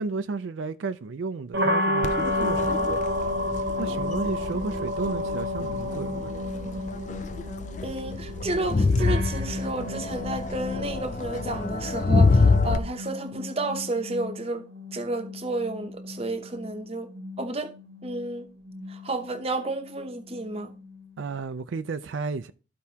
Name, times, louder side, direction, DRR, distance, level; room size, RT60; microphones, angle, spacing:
voice 1, 0.0-2.8 3.8-6.3 21.2-22.5, right 4 dB, 75° right, 0.4 m, -33 dB
sound 1, 1.5-21.4, left 1 dB, 55° right, 1.0 m, -32 dB
Crowd, 2.0-12.8, left 3 dB, 40° left, 0.4 m, -27 dB
voice 2, 7.8-14.6 14.9-17.1 17.4-17.7 18.0-18.5 18.9-20.7, right 2 dB, 30° right, 0.8 m, -31 dB
13.5 x 4.7 x 2.8 m
head